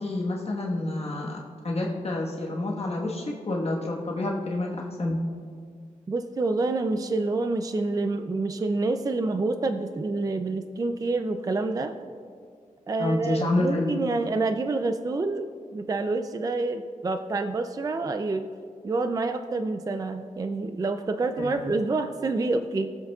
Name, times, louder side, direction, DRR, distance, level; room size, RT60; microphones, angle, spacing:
voice 1, 0.0-1.4 1.6-4.7 5.0-5.2 13.0-14.0 21.4-21.6, left 2 dB, 45° left, -3 dB, 1.3 m, -28 dB
voice 2, 6.1-11.9 12.9-18.4 18.8-22.9, right 3 dB, 25° right, 7 dB, 0.4 m, -27 dB
22.5 x 7.9 x 2.3 m, 2.1 s
wide cardioid pair, 170°, 14 cm